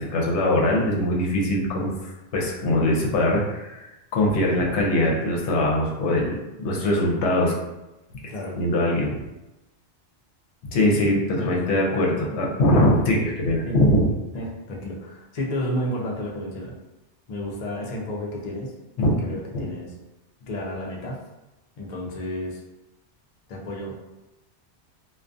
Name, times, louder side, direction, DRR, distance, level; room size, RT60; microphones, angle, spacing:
voice 1, 0.0-7.5 8.5-9.1 10.7-14.1 19.0-19.6, left 1 dB, 75° left, -1 dB, 0.9 m, -22 dB
voice 2, 14.3-16.7 17.3-18.7 19.2-19.9 20.5-21.2 21.8-22.6 23.5-24.0, equal, 55° left, -2 dB, 0.4 m, -31 dB
2.3 x 2.2 x 2.5 m, 0.99 s
omnidirectional pair, 1.2 m